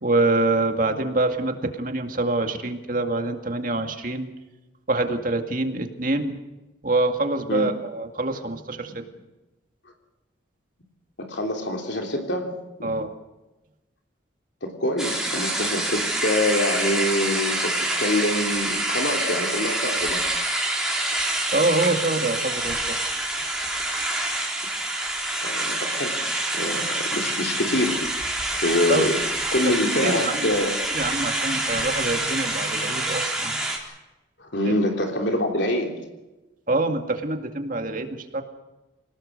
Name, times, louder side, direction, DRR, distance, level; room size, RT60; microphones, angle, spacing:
voice 1, 0.0-4.3 4.9-6.4 6.8-8.9 12.8-13.1 21.5-22.9 28.9-29.1 30.0-30.5 30.9-33.6 34.6-34.7 36.7-38.4, right 2 dB, 45° right, 5 dB, 2.1 m, -25 dB
voice 2, 11.2-12.5 12.8-12.9 14.6-20.3 25.4-26.2 26.5-28.0 28.6-29.2 29.5-30.8 34.4-36.0, left 1 dB, 65° left, 2 dB, 3.3 m, -25 dB
sound 1, 15.0-33.8, right 1 dB, 5° right, 3.8 m, -26 dB
27.5 x 18.5 x 6.6 m, 1.1 s
head